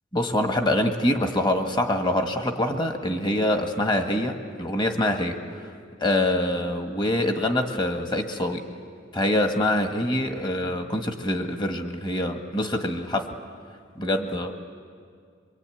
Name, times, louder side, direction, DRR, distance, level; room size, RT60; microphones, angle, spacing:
voice 1, 0.1-5.7 6.0-8.7 9.1-13.3 14.0-14.5, left 1 dB, 25° left, 5 dB, 1.6 m, -25 dB
25.0 x 23.5 x 9.3 m, 2.1 s
head